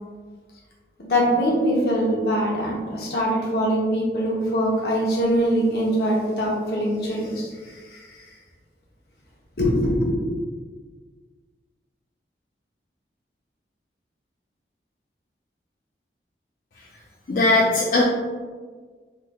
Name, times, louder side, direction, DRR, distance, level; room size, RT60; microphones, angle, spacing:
voice 1, 1.0-8.2 9.6-10.1, equal, 65° left, -3 dB, 0.8 m, -23 dB
voice 2, 17.3-18.0, left 2 dB, 50° left, -5 dB, 0.3 m, -19 dB
3.1 x 3.0 x 2.2 m, 1.5 s
head